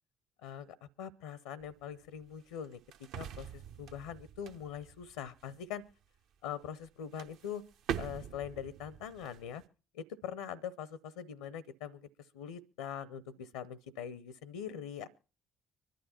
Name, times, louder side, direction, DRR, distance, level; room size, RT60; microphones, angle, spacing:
voice 1, 0.4-2.8 3.2-5.8 6.4-7.6 8.0-9.6 9.9-12.0 12.3-15.1, left 8 dB, 70° left, 20 dB, 0.5 m, -42 dB
sound 1, 1.6-5.9 6.7-6.9 7.1-9.6, right 8 dB, 60° right, 0.7 m, -44 dB
25.0 x 11.5 x 2.9 m, 0.36 s
figure-of-eight pair, 50°, 0 cm